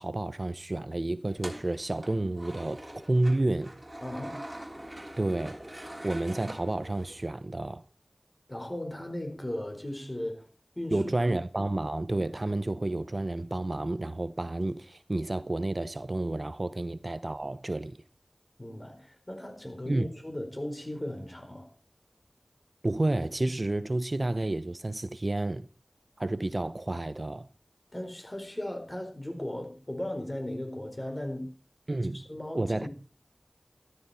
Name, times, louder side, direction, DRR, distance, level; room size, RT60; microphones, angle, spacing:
voice 1, 0.0-3.7 5.2-5.6 6.0-7.8 10.9-18.0 19.9-20.1 22.8-25.7 26.2-27.5 31.9-32.3 32.5-32.9, right 2 dB, 50° right, 0.8 m, -30 dB
sound 1, 1.3-7.3, right 1 dB, 25° right, 3.4 m, -44 dB
voice 2, 4.0-4.3 8.5-10.4 10.8-11.0 18.6-21.7 27.9-31.5 32.1-32.9, left 1 dB, 30° left, 4.6 m, -37 dB
13.5 x 13.0 x 4.4 m
wide cardioid pair, 40°, 0 cm